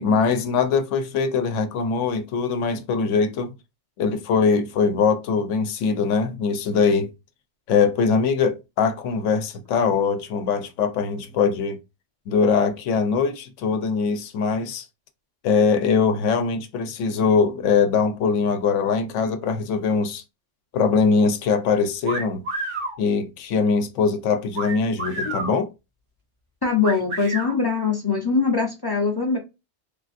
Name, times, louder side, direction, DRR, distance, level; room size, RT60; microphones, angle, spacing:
voice 1, 0.0-3.5 4.0-7.1 7.7-11.8 12.3-14.9 15.4-20.2 20.7-22.4 23.0-25.7, left 5 dB, 85° left, 0.9 m, -22 dB
sound 1, 22.0-23.0 24.5-25.6 26.8-27.5, right 2 dB, 85° right, 1.3 m, -29 dB
voice 2, 26.6-29.4, left 5 dB, 30° left, 0.5 m, -22 dB
3.3 x 2.5 x 2.5 m
omnidirectional pair, 1.2 m